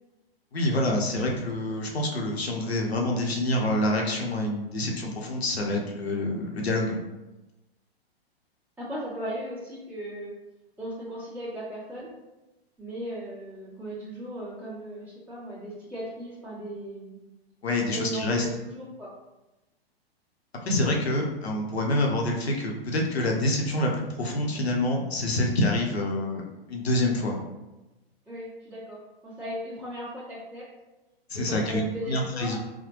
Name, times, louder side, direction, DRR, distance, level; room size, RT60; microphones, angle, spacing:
voice 1, 0.5-7.0 17.6-18.5 20.6-27.4 31.3-32.6, left 1 dB, 80° left, 0 dB, 0.8 m, -27 dB
voice 2, 8.8-10.3 10.8-12.1 12.8-17.2 17.9-19.1 28.2-30.7 31.3-32.6, equal, 5° right, -10 dB, 1.2 m, -37 dB
4.1 x 2.2 x 3.0 m, 1.0 s
figure-of-eight pair, 110°, 31 cm